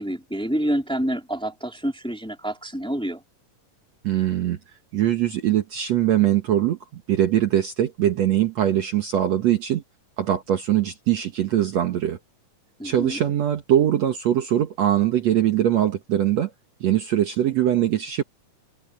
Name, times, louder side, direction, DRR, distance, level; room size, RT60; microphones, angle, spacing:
voice 1, 0.0-3.2 12.8-13.2, right 1 dB, ahead, 3.2 m, -27 dB
voice 2, 4.0-4.6 4.9-9.8 10.2-12.2 12.8-16.5 16.8-18.2, right 11 dB, 60° right, 2.2 m, -22 dB
omnidirectional pair, 3.8 m